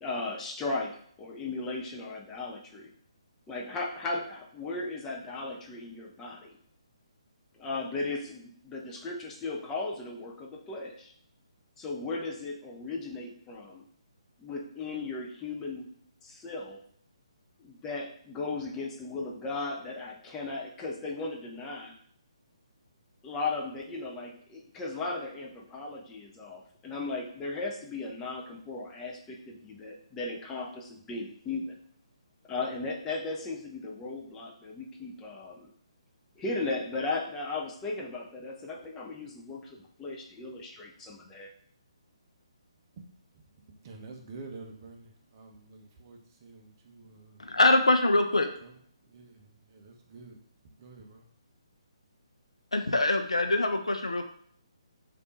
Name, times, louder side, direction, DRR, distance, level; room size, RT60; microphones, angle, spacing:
voice 1, 0.0-2.9 3.5-6.6 7.5-11.1 11.8-13.8 14.4-15.9 16.2-16.8 17.6-21.9 23.2-31.8 32.5-35.7 36.4-41.5, left 3 dB, 15° left, -1 dB, 0.5 m, -36 dB
voice 2, 43.8-47.4 48.6-48.7 49.1-49.4 49.7-50.4 50.8-51.2, right 3 dB, 30° right, 2 dB, 0.7 m, -48 dB
voice 3, 47.4-48.5 52.7-54.2, left 2 dB, 75° left, 5 dB, 0.5 m, -24 dB
3.4 x 2.6 x 4.1 m, 0.63 s
figure-of-eight pair, 140°, 3 cm